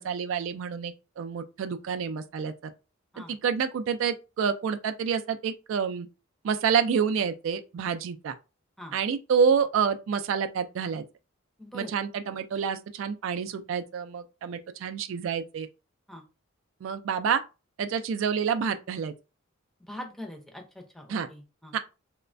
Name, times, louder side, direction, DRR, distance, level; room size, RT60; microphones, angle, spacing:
voice 1, 0.0-2.5 3.3-6.1 6.4-8.3 8.9-11.0 11.7-15.7 16.8-17.4 17.8-19.1 21.1-21.3 21.7-21.8, right 6 dB, 70° right, 0.3 m, -28 dB
voice 2, 11.6-11.9 16.1-16.2 19.9-21.7, left 1 dB, ahead, 0.5 m, -42 dB
3.0 x 2.1 x 2.5 m
head